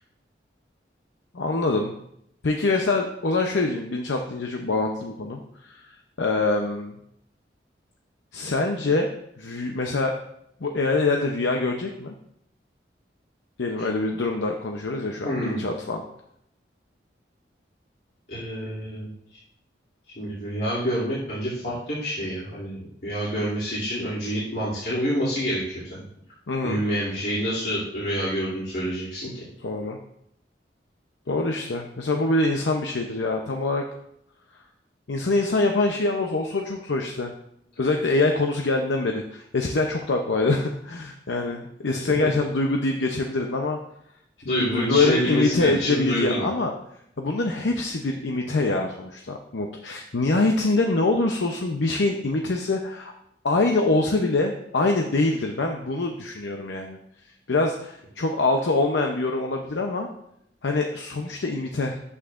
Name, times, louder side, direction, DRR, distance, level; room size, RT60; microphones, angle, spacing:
voice 1, 1.3-1.9 2.4-6.9 8.3-9.1 9.4-10.1 10.6-12.1 13.6-16.0 26.5-26.8 29.6-30.0 31.3-33.8 35.1-37.3 37.8-43.8 44.4-46.7 47.2-53.1 53.4-57.0 57.5-60.1 60.6-62.0, left 2 dB, 85° left, 3 dB, 0.7 m, -24 dB
voice 2, 15.2-15.6 18.3-19.1 20.2-26.0 26.6-29.4 42.0-42.1 44.4-46.5, equal, 65° left, -10 dB, 2.7 m, -27 dB
11.0 x 8.3 x 2.5 m, 0.76 s
head